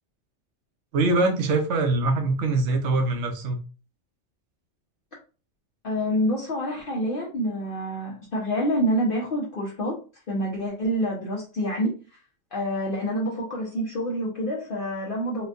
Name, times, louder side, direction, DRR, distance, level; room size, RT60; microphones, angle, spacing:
voice 1, 0.9-3.6, right 2 dB, 70° right, 1.0 m, -23 dB
voice 2, 5.8-10.0 10.3-11.9 12.5-15.5, equal, 50° left, 0.9 m, -27 dB
4.2 x 2.2 x 2.6 m
omnidirectional pair, 1.3 m